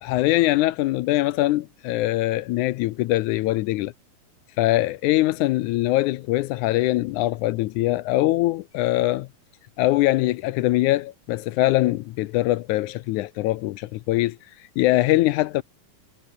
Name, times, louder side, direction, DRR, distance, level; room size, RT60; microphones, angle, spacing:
voice 1, 0.0-3.9 4.6-9.3 9.8-14.4 14.8-15.6, left 17 dB, 80° left, 1.8 m, -22 dB
omnidirectional pair, 4.0 m